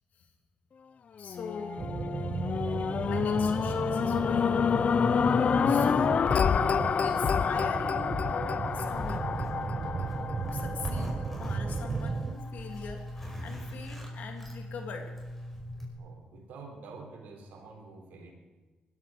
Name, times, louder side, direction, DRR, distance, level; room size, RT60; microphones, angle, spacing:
voice 1, 1.2-1.8 3.1-4.7 5.1-6.2 6.7-9.3 10.4-15.1, left 5 dB, 75° left, 4 dB, 2.7 m, -42 dB
sound 1, 1.2-11.5 12.1-12.2, left 6 dB, 50° left, 0.4 m, -28 dB
sound 2, 1.8-12.4, right 5 dB, 45° right, 0.5 m, -35 dB
Zipper (clothing), 8.7-15.9, equal, 10° left, 5.2 m, -40 dB
voice 2, 16.0-18.3, right 3 dB, 90° right, 2 dB, 3.5 m, -47 dB
20.0 x 12.5 x 5.1 m, 1.3 s
cardioid pair, 75°, 3 cm